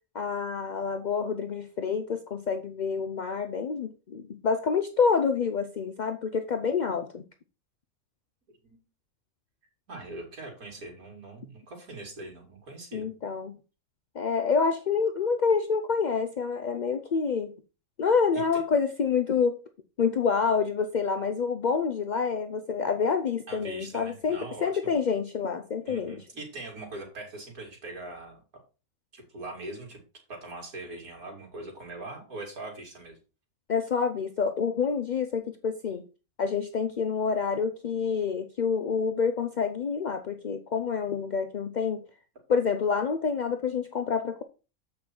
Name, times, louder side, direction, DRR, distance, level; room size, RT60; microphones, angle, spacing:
voice 1, 0.1-7.2 12.9-13.6 14.1-17.5 18.0-19.6 20.0-26.3 33.7-36.0 36.4-42.0 42.5-44.4, left 5 dB, 65° left, 8 dB, 0.4 m, -27 dB
voice 2, 9.9-13.1 18.3-18.6 23.5-24.9 25.9-28.4 29.1-30.0 30.3-33.2, right 2 dB, 75° right, 0 dB, 3.2 m, -41 dB
7.5 x 5.8 x 4.4 m, 0.33 s
omnidirectional pair, 1.5 m